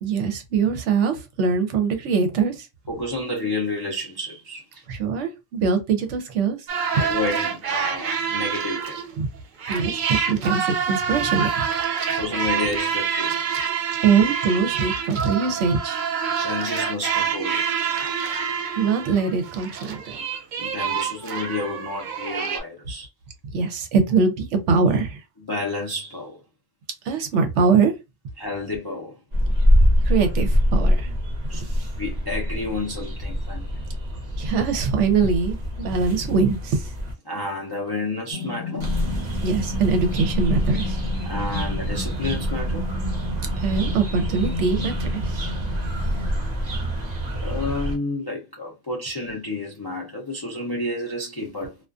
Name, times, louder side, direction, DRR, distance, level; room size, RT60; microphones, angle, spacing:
voice 1, 0.0-2.7 4.9-6.6 6.9-7.0 9.2-9.3 9.7-11.7 14.0-16.0 18.8-20.2 23.5-25.2 27.1-27.9 30.1-31.1 34.4-36.9 39.4-41.0 43.6-45.5, right 5 dB, 70° right, 0.9 m, -22 dB
voice 2, 2.9-4.8 6.9-9.0 12.2-14.1 16.4-18.0 20.6-23.1 25.5-26.4 28.4-29.1 31.5-33.7 37.2-39.0 41.3-42.9 47.4-51.8, left 2 dB, 40° left, 0.3 m, -30 dB
sound 1, 6.7-9.2 9.6-22.6, right 7 dB, 85° right, 0.4 m, -27 dB
sound 2, 29.3-37.1 38.8-48.0, equal, 40° right, 0.6 m, -25 dB
sound 3, 38.3-46.3, left 4 dB, 65° left, 1.0 m, -33 dB
2.4 x 2.3 x 2.4 m
omnidirectional pair, 1.4 m